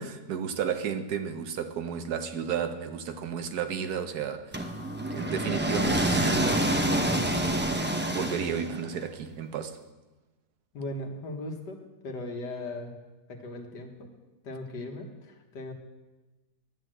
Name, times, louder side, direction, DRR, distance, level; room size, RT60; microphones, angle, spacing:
voice 1, 0.0-4.8 5.1-6.7 7.8-9.8, right 7 dB, 70° right, 1.3 m, -33 dB
sound 1, 4.5-8.9, right 1 dB, 15° right, 0.4 m, -27 dB
voice 2, 10.7-11.8 12.0-13.0 13.3-14.1 14.4-15.7, left 1 dB, 80° left, 2.0 m, -38 dB
11.0 x 7.9 x 7.7 m
omnidirectional pair, 1.8 m